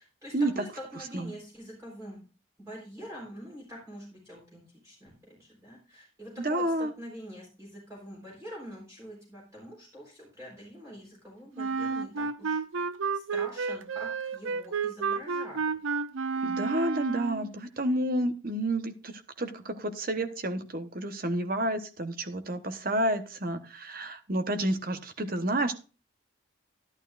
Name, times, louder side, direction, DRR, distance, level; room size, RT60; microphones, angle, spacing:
voice 1, 0.0-2.2 2.6-12.6 13.1-15.6, equal, 15° right, -4 dB, 4.0 m, -45 dB
voice 2, 0.9-1.3 6.4-6.9 16.4-25.8, right 1 dB, 45° right, 8 dB, 1.1 m, -30 dB
Wind instrument woodwind instrument, 11.6-17.5, right 5 dB, 75° right, 0.5 m, -31 dB
11.5 x 11.5 x 2.5 m, 0.34 s
head